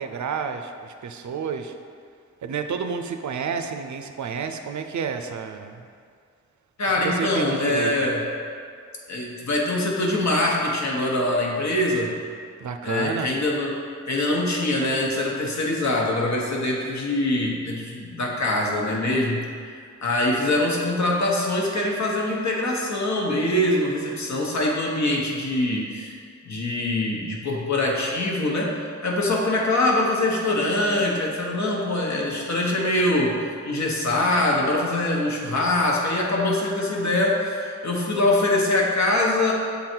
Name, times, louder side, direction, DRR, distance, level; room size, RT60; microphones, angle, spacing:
voice 1, 0.0-1.8 2.4-5.8 6.9-7.9 12.6-13.3, right 6 dB, 75° right, 7 dB, 0.5 m, -30 dB
voice 2, 6.8-8.2 9.1-12.1 12.8-13.7 14.1-39.5, left 1 dB, 65° left, -1 dB, 1.0 m, -23 dB
6.9 x 3.8 x 4.5 m, 2.2 s
wide cardioid pair, 125°, 30 cm